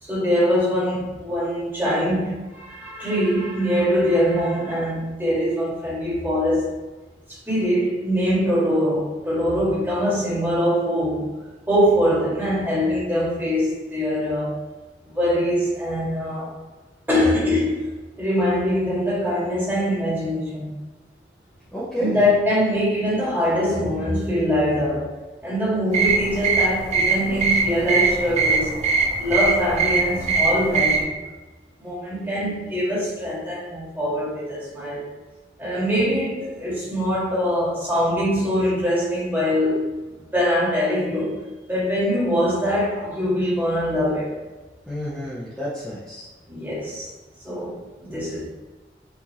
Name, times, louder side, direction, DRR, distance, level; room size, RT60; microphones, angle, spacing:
voice 1, 0.0-6.8 7.3-11.3 11.7-14.5 15.0-16.5 17.1-17.9 18.2-20.7 22.0-25.1 25.4-28.8 29.2-31.1 31.8-35.0 35.6-39.9 40.3-44.4 46.5-47.1 47.4-48.5, equal, 10° right, 1.4 m, -23 dB
voice 2, 21.7-22.3 44.9-46.3 48.1-48.2, equal, 5° left, 0.7 m, -30 dB
sound 1, 25.9-31.0, right 4 dB, 35° right, 0.4 m, -21 dB
4.7 x 2.7 x 2.8 m
head